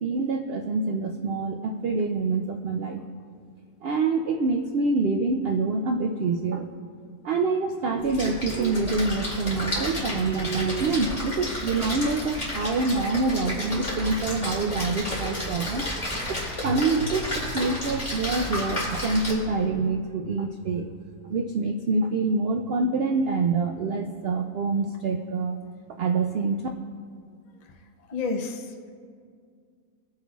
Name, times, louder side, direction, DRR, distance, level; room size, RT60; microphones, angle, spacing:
voice 1, 0.0-3.0 3.8-6.7 7.2-15.9 16.3-20.9 21.3-25.6 26.0-26.6, right 3 dB, 90° right, 4 dB, 0.5 m, -26 dB
Splash splatter, 8.0-19.3, left 1 dB, 25° left, 2.7 m, -32 dB
voice 2, 28.1-28.9, left 4 dB, 50° left, 3 dB, 0.4 m, -30 dB
22.0 x 7.8 x 2.4 m, 2.2 s
omnidirectional pair, 1.6 m